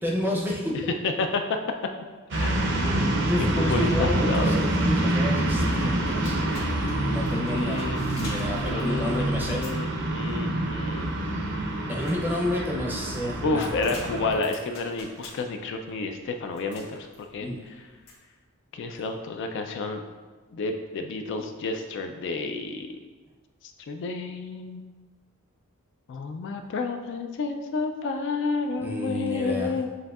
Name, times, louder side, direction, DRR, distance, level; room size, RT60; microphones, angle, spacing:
voice 1, 0.0-0.7 2.8-7.8 8.1-9.6 11.9-13.7 17.4-17.6 28.8-29.7, left 1 dB, 10° right, -2 dB, 0.6 m, -30 dB
voice 2, 1.0-1.6 2.3-2.7 3.6-4.6 7.3-8.0 8.6-11.5 11.9-12.0 13.4-17.5 18.7-20.0 20.5-22.9 23.9-24.8 26.1-29.9, left 3 dB, 55° left, 5 dB, 0.3 m, -30 dB
sound 1, 2.3-14.4, right 1 dB, 55° right, 0.5 m, -26 dB
sound 2, 5.6-18.1, left 2 dB, 85° left, 1.3 m, -47 dB
7.5 x 2.7 x 2.3 m, 1.4 s
head